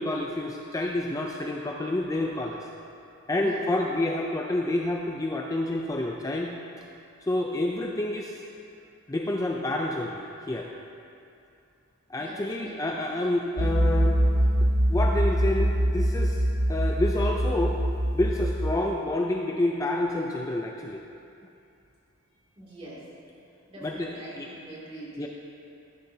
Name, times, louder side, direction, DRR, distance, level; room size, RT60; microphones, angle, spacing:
voice 1, 0.0-2.7 3.3-6.5 7.2-8.4 9.1-10.7 12.1-14.2 14.6-17.8 18.1-21.0 23.8-24.6 25.2-25.3, left 1 dB, 15° left, 1 dB, 0.5 m, -29 dB
voice 2, 12.2-12.8 22.6-23.0 23.7-25.3, right 1 dB, 25° right, -6 dB, 2.6 m, -43 dB
sound 1, 13.6-18.7, equal, 85° right, 1.1 m, -24 dB
13.5 x 11.0 x 2.8 m, 2.6 s
head